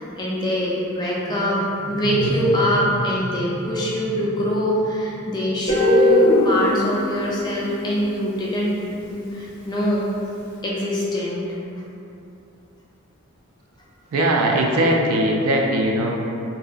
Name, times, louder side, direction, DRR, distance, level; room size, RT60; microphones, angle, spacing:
voice 1, 0.2-1.6 1.9-8.8 9.1-10.0 10.6-11.5, equal, 20° left, -5 dB, 0.3 m, -23 dB
sound 1, 0.9-6.3, equal, 50° right, 0.8 m, -32 dB
Guitar, 5.7-8.6, left 1 dB, 40° left, 0.7 m, -21 dB
voice 2, 14.1-16.2, right 1 dB, 90° right, 0 dB, 0.4 m, -20 dB
2.7 x 2.3 x 2.4 m, 2.7 s
head